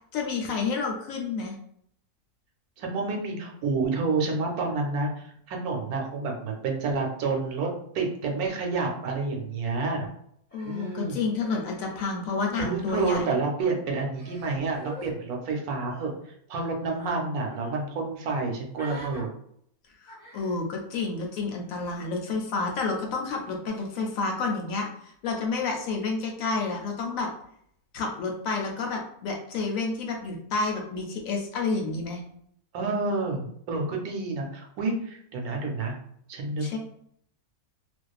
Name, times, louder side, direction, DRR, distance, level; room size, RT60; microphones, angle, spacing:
voice 1, 0.1-1.5 10.5-13.2 20.0-27.3 27.9-32.2 36.6-36.8, left 4 dB, 70° left, 1 dB, 0.9 m, -30 dB
voice 2, 2.8-7.7 7.9-10.1 10.6-11.2 12.6-16.1 16.5-19.3 32.7-35.9 36.3-36.8, right 3 dB, 80° right, 1 dB, 1.1 m, -29 dB
Human voice, 10.5-12.3 12.6-13.2 13.9-15.1 15.8-16.1 17.0-17.2 17.5-17.7 18.7-19.2 20.1-20.6 21.7-22.0, right 1 dB, 15° left, 0.3 m, -46 dB
2.5 x 2.3 x 2.3 m, 0.69 s
omnidirectional pair, 1.6 m